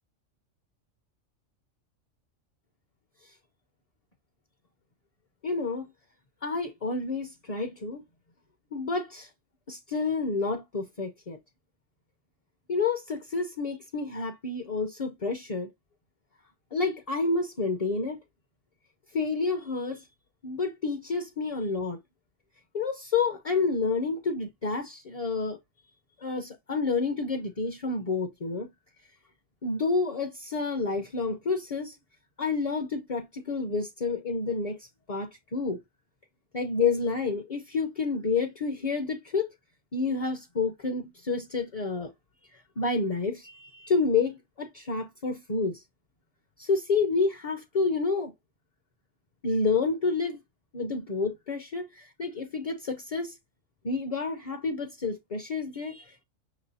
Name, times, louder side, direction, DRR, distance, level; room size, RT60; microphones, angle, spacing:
voice 1, 5.4-5.9 6.4-8.0 8.7-9.3 9.7-11.4 12.7-15.7 16.7-18.2 19.1-20.0 20.4-22.0 22.7-25.6 26.2-28.7 29.6-32.0 32.4-35.8 36.5-39.5 39.9-42.1 42.5-45.8 46.6-48.3 49.4-50.4 50.7-53.4 53.8-56.2, left 4 dB, 40° left, 0.6 m, -29 dB
6.1 x 3.1 x 2.7 m
omnidirectional pair, 1.4 m